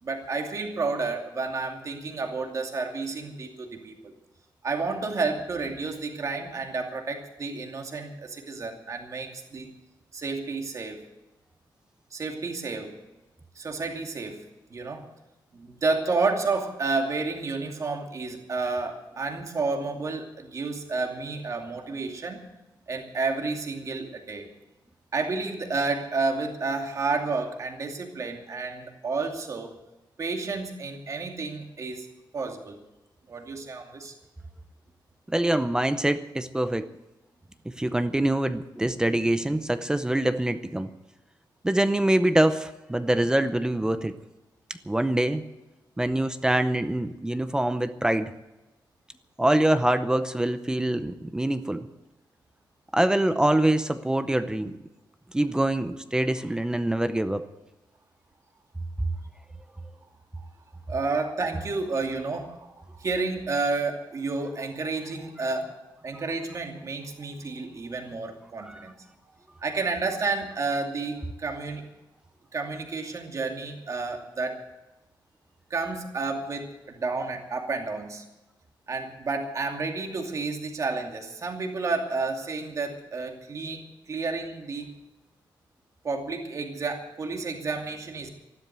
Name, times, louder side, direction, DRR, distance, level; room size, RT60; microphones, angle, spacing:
voice 1, 0.0-4.1 4.6-9.7 10.1-11.0 12.1-12.9 13.6-14.4 14.7-15.0 15.5-22.4 22.9-24.5 25.1-29.7 30.2-32.1 32.3-32.8 33.3-34.1 60.9-65.7 66.0-69.0 69.6-71.9 72.5-74.6 75.7-78.2 78.9-84.9 86.0-88.3, right 3 dB, 40° right, 3 dB, 2.6 m, -31 dB
voice 2, 35.3-36.9 37.8-40.9 41.6-44.2 44.9-45.4 46.0-48.3 49.4-51.9 52.9-54.8 55.3-57.4 68.6-68.9, right 1 dB, 10° right, 10 dB, 0.7 m, -24 dB
14.5 x 12.0 x 8.1 m, 0.99 s
wide cardioid pair, 155°, 8 cm